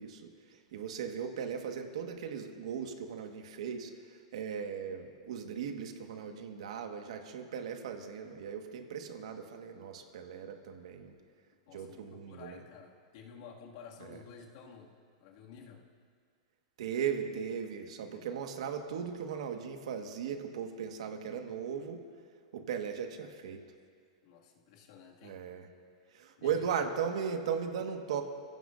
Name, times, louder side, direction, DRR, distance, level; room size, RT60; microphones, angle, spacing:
voice 1, 0.0-11.2 11.7-12.6 14.0-14.2 16.8-22.0 22.5-23.6 25.2-25.7 26.1-28.2, right 7 dB, 75° right, 4 dB, 1.6 m, -37 dB
voice 2, 11.7-14.9 15.2-15.8 18.1-18.4 24.2-25.4 26.4-26.7, left 6 dB, 55° left, -1 dB, 2.2 m, -52 dB
27.5 x 16.5 x 2.6 m, 2.1 s
supercardioid pair, 150°, 3 cm